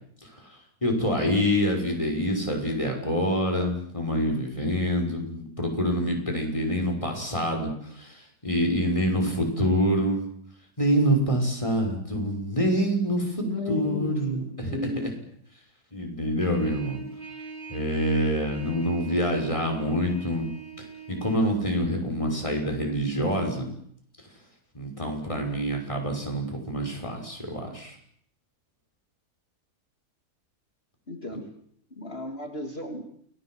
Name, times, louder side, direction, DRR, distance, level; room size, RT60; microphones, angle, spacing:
voice 1, 0.8-10.2 10.8-14.8 15.0-15.1 15.9-17.0 17.7-20.5 20.8-23.7 24.7-27.9, equal, 20° left, 1 dB, 6.0 m, -26 dB
voice 2, 13.4-15.1 31.1-31.5 31.9-33.0, left 2 dB, 35° left, 4 dB, 3.2 m, -34 dB
Trumpet, 16.4-21.4, right 4 dB, 30° right, 3.8 m, -41 dB
29.0 x 20.0 x 7.9 m, 0.67 s
omnidirectional pair, 1.7 m